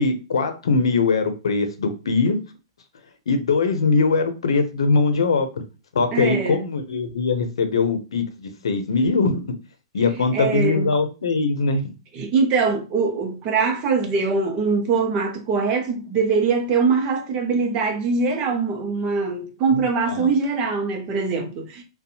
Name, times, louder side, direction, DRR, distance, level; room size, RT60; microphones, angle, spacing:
voice 1, 0.0-2.4 3.3-5.5 5.9-9.4 9.9-11.8 19.7-20.3, left 4 dB, 85° left, 0.6 m, -21 dB
voice 2, 6.1-6.6 10.3-10.9 12.1-21.8, right 4 dB, 35° right, 0.7 m, -22 dB
2.6 x 2.2 x 2.7 m
hypercardioid pair, 130°, 3 cm